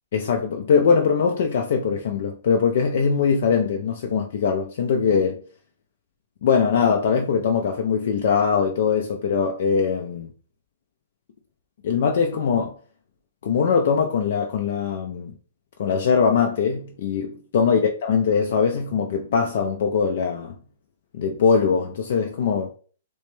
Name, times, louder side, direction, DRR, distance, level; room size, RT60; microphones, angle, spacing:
voice 1, 0.1-5.4 6.4-10.3 11.8-12.7 13.4-15.3 15.8-20.6 21.1-22.7, left 6 dB, 50° left, 0.4 m, -21 dB
3.3 x 3.0 x 3.1 m
hypercardioid pair, 175°, 0 cm